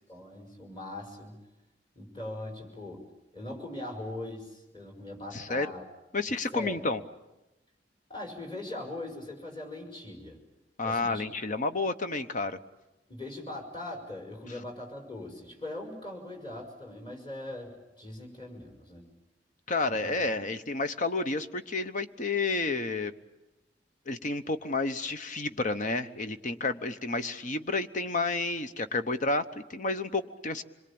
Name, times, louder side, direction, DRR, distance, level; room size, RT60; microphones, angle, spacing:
voice 1, 0.1-1.4 2.0-3.0 3.3-5.8 6.5-6.8 8.1-10.4 10.8-11.3 13.1-19.1 19.9-20.1, left 1 dB, 30° left, 3 dB, 5.5 m, -41 dB
voice 2, 5.3-5.7 6.1-7.0 10.8-12.6 19.7-23.1 24.1-30.6, left 3 dB, 45° left, 10 dB, 1.0 m, -30 dB
26.0 x 22.5 x 8.7 m, 0.98 s
head